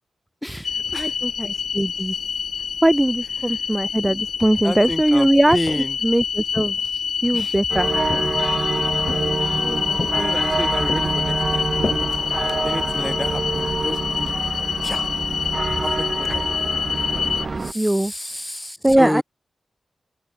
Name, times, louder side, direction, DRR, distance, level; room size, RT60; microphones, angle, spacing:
voice 1, 0.4-1.2 3.5-3.7 4.6-6.0 6.9-7.0 7.3-7.6 9.5-11.7 12.6-14.5 14.8-15.2 15.8-16.5 17.6-19.2, left 1 dB, 5° left, 1.7 m, -31 dB
sound 1, 0.6-17.5, left 6 dB, 65° left, 0.4 m, -26 dB
voice 2, 1.0-2.2 2.8-5.6 6.0-6.8 7.2-7.9 15.7-15.8 16.3-16.4 17.5-18.1 18.8-19.2, right 1 dB, 10° right, 0.3 m, -20 dB
Walk footsteps, 5.4-6.1 6.5-7.5 8.1-8.7 9.1-9.6 10.0-10.6 10.9-13.1, left 3 dB, 30° left, 3.4 m, -33 dB
sound 2, 7.7-17.7, right 3 dB, 30° right, 3.3 m, -26 dB
open air
wide cardioid pair, 165°, 0 cm